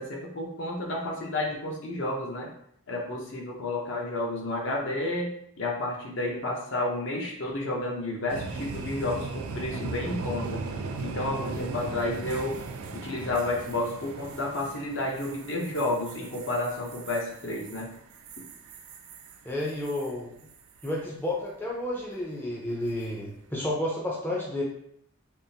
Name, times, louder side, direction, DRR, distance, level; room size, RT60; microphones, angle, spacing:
voice 1, 0.0-2.5 2.9-10.6 11.0-12.6 12.9-17.9, left 2 dB, 60° left, -1 dB, 0.7 m, -31 dB
sound 1, 8.3-20.1 20.5-20.9 22.8-23.2, right 4 dB, 90° right, 0.4 m, -38 dB
voice 2, 19.4-20.3 20.8-24.6, left 1 dB, 10° left, -4 dB, 0.5 m, -31 dB
3.5 x 2.5 x 2.7 m, 0.70 s
head